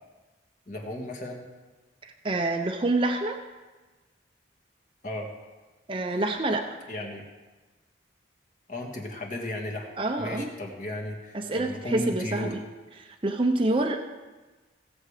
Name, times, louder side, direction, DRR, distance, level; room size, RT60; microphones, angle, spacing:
voice 1, 0.7-1.4 5.0-5.3 6.9-7.2 8.7-9.9 10.2-12.5, left 1 dB, 40° left, 0 dB, 1.7 m, -34 dB
voice 2, 2.0-3.4 5.9-6.6 10.0-10.5 11.3-12.6 13.0-14.0, right 2 dB, 25° right, 3 dB, 0.6 m, -27 dB
17.0 x 7.2 x 5.0 m, 1.3 s
head